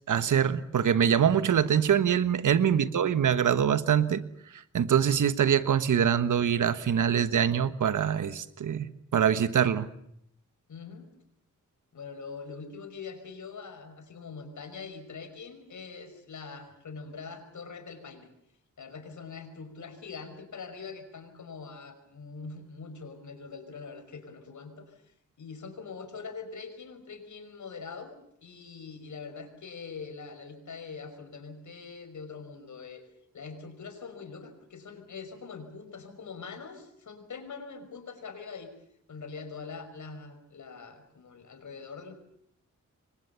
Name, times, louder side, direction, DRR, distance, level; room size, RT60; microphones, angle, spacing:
voice 1, 0.1-4.2 4.5-9.9, right 8 dB, 85° right, 13 dB, 1.4 m, -24 dB
voice 2, 2.6-3.0 10.7-11.1 11.9-18.3 18.8-28.1 28.4-33.0 33.3-38.7 39.1-42.1, left 5 dB, 75° left, 7 dB, 5.5 m, -43 dB
28.5 x 23.5 x 7.1 m, 0.72 s
wide cardioid pair, 110°, 30 cm